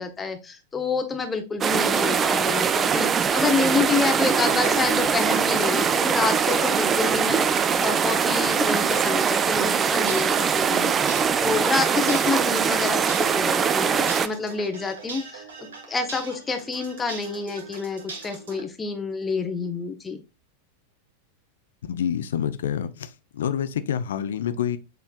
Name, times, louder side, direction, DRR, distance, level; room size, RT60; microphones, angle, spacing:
voice 1, 0.0-11.0 11.4-15.5 15.9-20.2, left 4 dB, 15° left, 0.8 m, -28 dB
sound 1, 1.6-14.3, right 6 dB, 20° right, 0.3 m, -22 dB
sound 2, 11.0-18.6, right 4 dB, 65° right, 1.3 m, -40 dB
voice 2, 21.8-24.8, left 9 dB, 60° left, 0.5 m, -27 dB
6.5 x 3.3 x 2.3 m
figure-of-eight pair, 90°, 0 cm